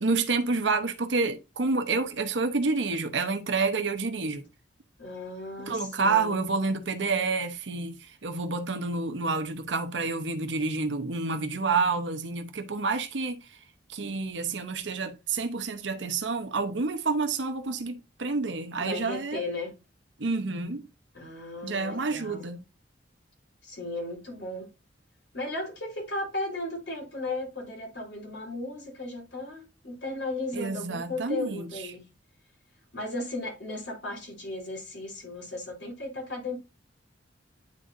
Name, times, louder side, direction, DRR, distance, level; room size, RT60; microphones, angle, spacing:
voice 1, 0.0-4.4 5.7-13.4 13.9-19.5 20.2-20.8 21.6-22.6 30.5-31.7, right 4 dB, 85° right, 0.9 m, -29 dB
voice 2, 5.0-6.4 18.8-19.7 21.1-22.5 23.6-24.7 25.3-32.0 32.9-36.6, left 2 dB, 75° left, 3.4 m, -35 dB
9.7 x 3.8 x 2.6 m
head